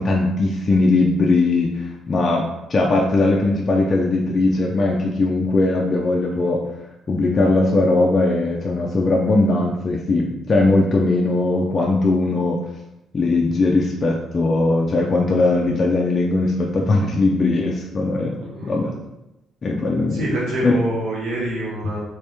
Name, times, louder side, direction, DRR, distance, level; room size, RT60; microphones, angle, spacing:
voice 1, 0.0-6.6 7.1-12.6 13.1-18.3 18.6-19.0 19.6-20.2 20.6-20.7, left 2 dB, 30° left, -1 dB, 0.4 m, -19 dB
voice 2, 18.4-18.8 20.1-22.0, right 1 dB, 85° right, -6 dB, 1.1 m, -26 dB
3.4 x 2.9 x 3.3 m, 0.94 s
cardioid pair, 145°, 0 cm